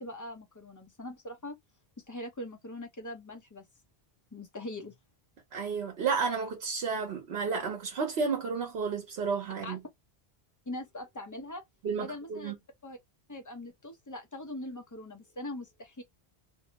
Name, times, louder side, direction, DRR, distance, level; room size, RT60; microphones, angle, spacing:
voice 1, 0.0-1.6 2.1-3.7 4.3-5.0 9.6-9.8 10.7-11.6 12.0-12.5 12.8-13.0 13.3-16.0, left 1 dB, 25° left, 0.5 m, -41 dB
voice 2, 5.5-9.8 11.8-12.6, right 5 dB, 75° right, 1.0 m, -32 dB
2.6 x 2.0 x 2.8 m
omnidirectional pair, 1.0 m